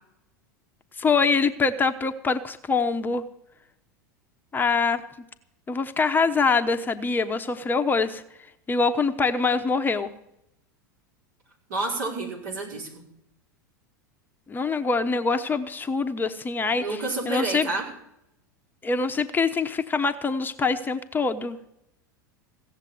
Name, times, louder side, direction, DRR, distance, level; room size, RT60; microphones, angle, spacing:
voice 1, 1.0-3.2 4.5-5.0 5.7-8.2 8.7-10.1 14.5-16.8 17.3-17.7 18.8-21.6, left 4 dB, 20° left, 8 dB, 0.9 m, -24 dB
voice 2, 11.7-13.0 16.8-17.9, right 2 dB, 65° right, -1 dB, 5.4 m, -29 dB
16.5 x 7.5 x 9.3 m, 0.80 s
hypercardioid pair, 90°, 10 cm